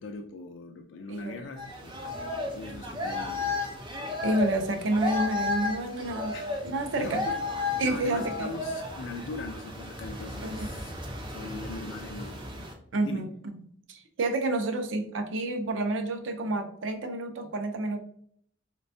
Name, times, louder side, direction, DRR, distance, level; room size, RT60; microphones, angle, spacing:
voice 1, 0.0-2.0 2.5-3.7 6.3-6.6 6.9-7.4 7.8-10.9 11.3-12.5 13.0-13.3, left 3 dB, 80° left, 4 dB, 0.3 m, -40 dB
voice 2, 1.1-1.4 4.2-6.3 6.6-7.2 7.8-8.5 10.4-10.7 12.9-18.0, right 2 dB, 80° right, 6 dB, 0.5 m, -29 dB
sound 1, 1.6-12.7, left 2 dB, 25° right, 0.6 m, -34 dB
4.0 x 2.2 x 2.6 m, 0.63 s
head